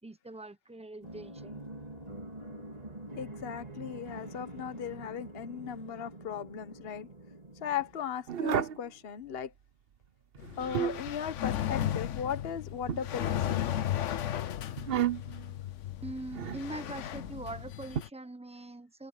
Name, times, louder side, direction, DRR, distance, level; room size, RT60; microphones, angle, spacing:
voice 1, 0.0-1.6 16.0-19.1, right 2 dB, 5° right, 0.7 m, -43 dB
sound 1, 1.0-8.6, right 1 dB, 25° right, 4.0 m, -46 dB
voice 2, 3.2-7.1 7.6-9.5 10.6-13.7, left 8 dB, 45° left, 1.2 m, -37 dB
sound 2, 8.3-8.8 10.4-11.2 12.9-13.8 14.8-15.4 16.3-16.7 17.9-18.0, right 9 dB, 50° right, 0.8 m, -32 dB
sound 3, 10.4-18.1, left 11 dB, 65° left, 1.0 m, -35 dB
omnidirectional pair, 1.5 m